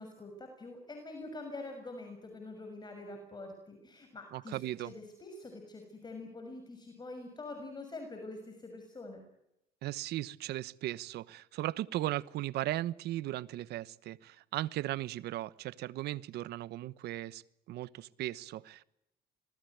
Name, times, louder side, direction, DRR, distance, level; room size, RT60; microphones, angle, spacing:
voice 1, 0.0-9.2, left 2 dB, 25° left, 6.4 m, -45 dB
voice 2, 4.3-4.9 9.8-17.4 17.7-18.8, right 15 dB, 75° right, 1.1 m, -37 dB
26.5 x 20.0 x 9.4 m
cardioid pair, 110°, 17 cm